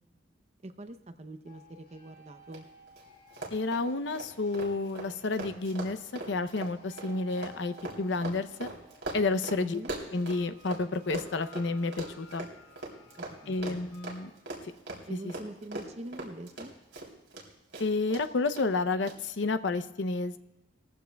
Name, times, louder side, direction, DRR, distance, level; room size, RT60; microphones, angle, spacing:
voice 1, 0.6-2.7 9.6-9.9 13.1-13.8 15.1-16.7, right 1 dB, 35° right, 8 dB, 0.7 m, -44 dB
sound 1, 1.5-14.1, left 1 dB, 55° left, 2.7 m, -57 dB
Run, 2.5-2.6 2.9-3.0 3.3-10.8 11.1-17.5 17.7-18.2 18.6-18.7 19.1-19.2, right 2 dB, 65° right, 3.3 m, -40 dB
voice 2, 3.5-6.0 6.3-8.7 9.1-9.8 10.1-12.5 13.5-14.3 15.1-15.3 17.8-20.4, left 3 dB, 75° left, 11 dB, 0.7 m, -30 dB
20.0 x 15.0 x 2.3 m, 0.96 s
head